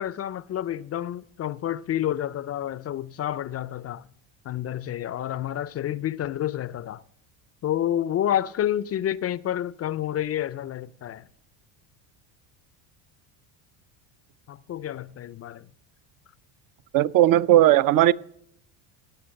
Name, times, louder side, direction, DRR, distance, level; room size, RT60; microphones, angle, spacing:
voice 1, 0.0-4.1 4.4-7.0 7.6-11.3 14.5-15.7, left 11 dB, 35° left, 0.4 m, -29 dB
voice 2, 16.9-18.1, right 13 dB, 50° right, 0.5 m, -17 dB
17.5 x 6.8 x 6.4 m
supercardioid pair, 105°, 46 cm